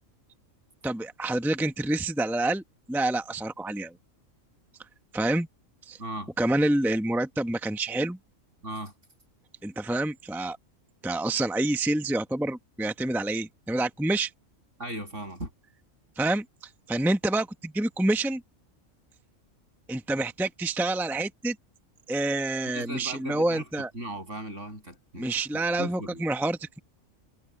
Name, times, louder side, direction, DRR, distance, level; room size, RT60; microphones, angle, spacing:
voice 1, 0.8-2.6 2.9-3.9 5.1-5.5 5.9-6.0 6.4-8.2 9.6-10.6 11.0-14.3 16.2-16.4 16.9-18.4 19.9-21.6 22.1-23.9 25.2-26.8, right 2 dB, ahead, 0.9 m, -27 dB
voice 2, 6.0-6.3 8.6-8.9 14.8-15.5 22.7-23.6 23.9-26.2, right 1 dB, 65° right, 8.3 m, -37 dB
omnidirectional pair, 1.4 m